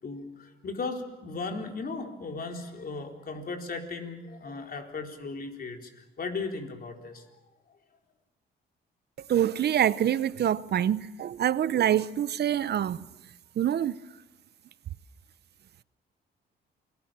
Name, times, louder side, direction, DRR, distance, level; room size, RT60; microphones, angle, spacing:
voice 1, 0.0-7.3, left 3 dB, 50° left, 4.1 m, -36 dB
voice 2, 9.3-13.1 13.6-14.0, right 10 dB, 55° right, 0.7 m, -25 dB
28.0 x 19.5 x 7.5 m
cardioid pair, 90°, 20 cm